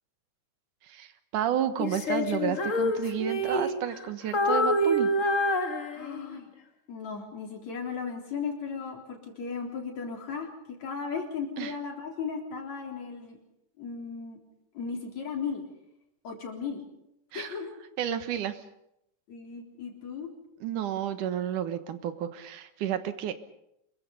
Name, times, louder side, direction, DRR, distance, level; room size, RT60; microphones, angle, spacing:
voice 1, 0.8-5.1 11.6-11.7 17.3-17.6 18.0-18.6 20.6-23.3, right 10 dB, 90° right, 10 dB, 2.9 m, -31 dB
Female singing, 1.8-4.0 4.3-6.4, left 1 dB, 45° left, 1.0 m, -27 dB
voice 2, 5.9-6.5 6.9-13.4 13.8-14.4 14.7-15.6 16.2-16.8 17.3-17.7 19.3-20.3, left 5 dB, 60° left, 2 dB, 5.0 m, -36 dB
26.0 x 22.5 x 5.3 m, 0.79 s
omnidirectional pair, 3.5 m